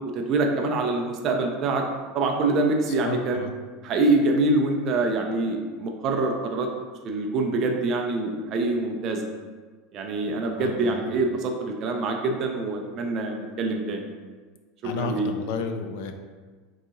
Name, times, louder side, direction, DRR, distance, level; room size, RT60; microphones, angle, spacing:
voice 1, 0.1-1.9 2.1-3.5 3.8-6.7 7.0-9.3 9.9-14.1 14.9-15.3, right 2 dB, 35° right, 3 dB, 0.5 m, -25 dB
voice 2, 3.0-3.5 10.6-11.1 14.8-16.1, left 4 dB, 60° left, 6 dB, 0.4 m, -32 dB
3.9 x 2.8 x 3.7 m, 1.4 s
supercardioid pair, 170°, 0 cm